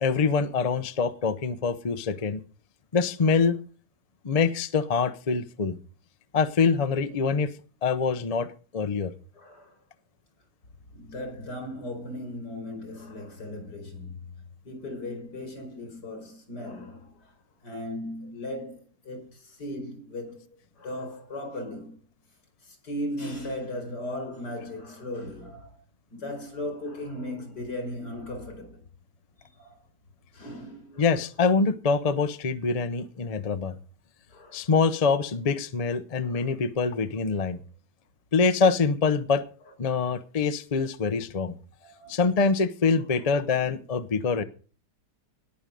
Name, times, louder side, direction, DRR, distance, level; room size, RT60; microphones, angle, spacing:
voice 1, 0.0-2.4 2.9-3.6 4.2-5.8 6.3-7.5 7.8-8.5 8.7-9.1 31.0-33.7 34.5-37.6 38.3-39.4 39.8-41.5 42.1-44.4, left 5 dB, 35° left, 0.6 m, -25 dB
voice 2, 9.3-9.8 10.9-14.2 14.7-17.3 17.6-20.5 20.8-21.9 22.6-25.8 26.1-28.8 29.5-29.8 30.3-31.2 34.3-34.7 36.2-36.6 39.9-40.2 41.9-42.2 43.1-43.3, left 1 dB, 85° left, 5.3 m, -37 dB
19.0 x 6.3 x 5.3 m
omnidirectional pair, 1.7 m